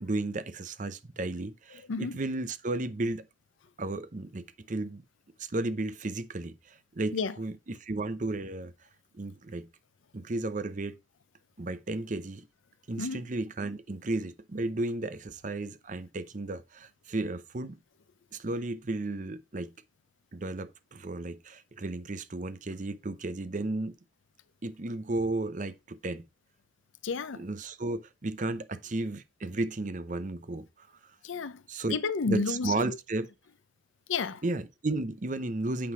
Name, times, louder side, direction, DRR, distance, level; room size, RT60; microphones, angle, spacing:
voice 1, 0.0-3.3 3.8-5.0 5.4-8.7 9.1-9.7 10.1-11.0 11.6-12.4 12.9-17.8 18.3-19.7 20.3-24.0 24.6-26.2 27.3-30.9 31.7-32.0 32.3-33.3 34.4-35.9, right 2 dB, 40° right, 0.7 m, -34 dB
voice 2, 27.0-27.5 31.2-31.6 31.9-33.0 34.1-34.4, left 4 dB, 90° left, 0.6 m, -31 dB
8.6 x 3.8 x 4.7 m
head